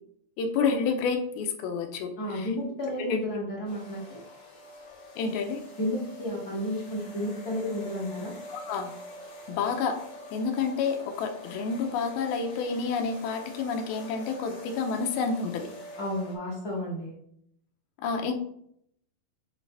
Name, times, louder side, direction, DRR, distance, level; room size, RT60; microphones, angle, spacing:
voice 1, 0.4-2.5 3.1-3.3 5.2-5.7 8.5-9.0 9.5-10.0 10.3-15.7 18.0-18.3, left 5 dB, 75° left, 5 dB, 2.5 m, -29 dB
voice 2, 2.2-4.2 5.8-8.3 16.0-17.1, left 1 dB, 30° left, -5 dB, 1.9 m, -32 dB
sound 1, 3.7-16.4, equal, 55° left, 4.2 m, -45 dB
10.5 x 4.0 x 3.3 m, 0.70 s
omnidirectional pair, 4.6 m